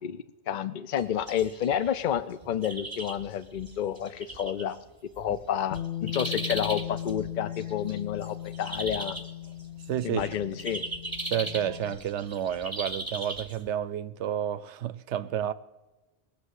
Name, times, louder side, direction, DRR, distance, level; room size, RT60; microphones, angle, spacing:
voice 1, 0.0-4.8 5.2-9.2 10.0-10.8, left 9 dB, 50° left, 0.7 m, -30 dB
sound 1, 1.0-13.7, right 2 dB, 20° right, 1.0 m, -38 dB
Bass guitar, 5.7-12.0, left 12 dB, 85° left, 1.2 m, -38 dB
voice 2, 9.9-10.3 11.2-15.5, right 10 dB, 70° right, 0.9 m, -30 dB
19.5 x 6.7 x 8.1 m
omnidirectional pair, 1.3 m